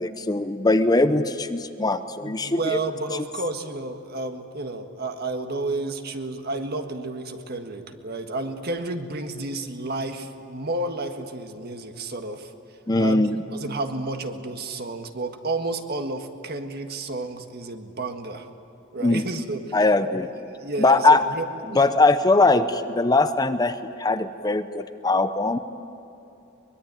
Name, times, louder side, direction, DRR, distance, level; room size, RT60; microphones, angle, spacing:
voice 1, 0.0-2.6 12.9-13.4 19.0-19.2 19.7-20.3 20.8-21.2 21.7-25.6, left 2 dB, 20° left, 10 dB, 0.7 m, -21 dB
voice 2, 2.2-12.5 13.0-18.5 18.9-19.9 20.6-21.8, right 2 dB, 50° right, 6 dB, 1.6 m, -31 dB
23.5 x 21.5 x 9.0 m, 2.9 s
head